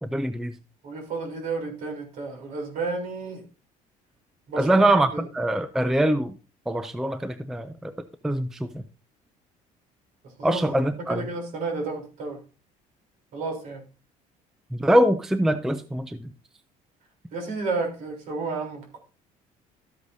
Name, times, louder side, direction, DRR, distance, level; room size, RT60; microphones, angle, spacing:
voice 1, 0.0-0.5 4.6-6.3 6.7-7.9 8.2-8.5 8.7-8.8 10.4-11.2 14.7-16.2, right 1 dB, 5° right, 0.4 m, -23 dB
voice 2, 0.8-3.4 4.5-4.9 5.1-5.3 10.4-10.6 11.0-12.4 13.3-13.8 17.3-19.0, right 3 dB, 60° right, 3.5 m, -31 dB
13.0 x 8.1 x 2.7 m
cardioid pair, 160°, 15 cm